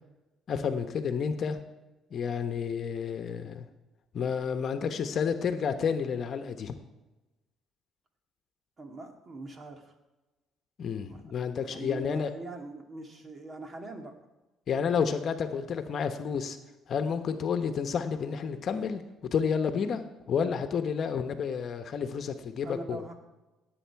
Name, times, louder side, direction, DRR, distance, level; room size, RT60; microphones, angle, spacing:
voice 1, 0.5-1.6 2.1-3.7 4.1-6.8 10.8-12.3 14.7-16.6 16.9-19.0 19.3-20.0 20.3-23.0, left 6 dB, 55° left, 8 dB, 1.1 m, -30 dB
voice 2, 8.8-10.0 11.1-11.2 11.6-14.1 22.6-23.2, right 2 dB, 35° right, 4 dB, 2.2 m, -42 dB
17.0 x 8.0 x 4.7 m, 1.1 s
cardioid pair, 90°, 0 cm